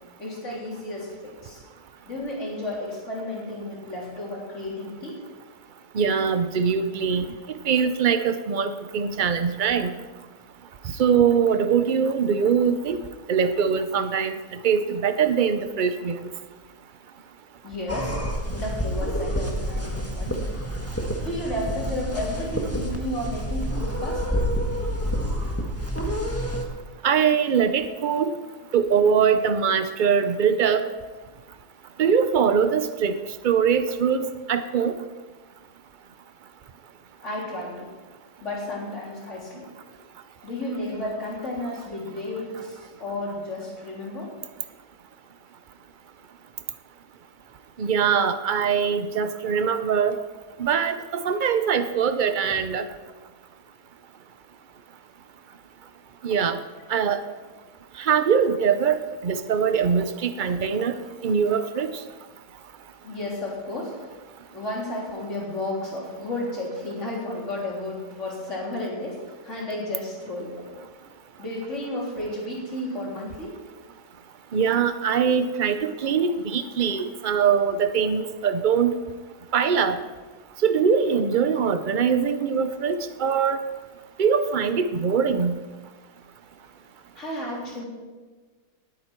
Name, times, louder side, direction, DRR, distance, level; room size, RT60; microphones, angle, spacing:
voice 1, 0.2-1.6 2.1-5.2 17.6-18.2 18.5-20.4 21.2-24.2 37.2-37.9 38.4-39.7 40.4-44.3 63.0-63.9 64.5-70.8 71.4-73.5 87.2-87.9, left 1 dB, 45° left, -4 dB, 3.8 m, -32 dB
voice 2, 5.9-7.3 7.7-9.9 11.0-13.0 13.3-14.4 14.6-16.2 27.0-28.3 28.7-30.9 32.0-33.2 33.4-34.9 47.8-50.1 50.6-52.9 56.2-56.6 56.9-57.2 58.0-60.9 61.2-61.9 74.5-78.9 79.5-80.0 80.6-83.6 84.2-85.6, right 7 dB, 65° right, 10 dB, 0.4 m, -22 dB
sound 1, 17.9-26.6, equal, 10° left, 1.3 m, -28 dB
19.0 x 9.0 x 4.5 m, 1.3 s
omnidirectional pair, 1.7 m